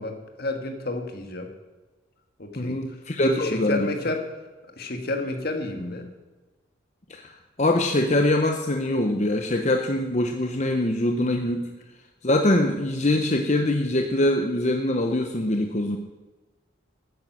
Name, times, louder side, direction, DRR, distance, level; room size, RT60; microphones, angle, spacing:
voice 1, 0.0-1.5 2.4-2.8 3.2-4.3 4.8-6.1, left 2 dB, 50° left, 5 dB, 1.8 m, -30 dB
voice 2, 2.6-3.9 7.1-7.3 7.6-11.7 12.2-16.0, left 1 dB, 35° left, 4 dB, 0.8 m, -23 dB
13.5 x 9.5 x 6.2 m, 1.2 s
head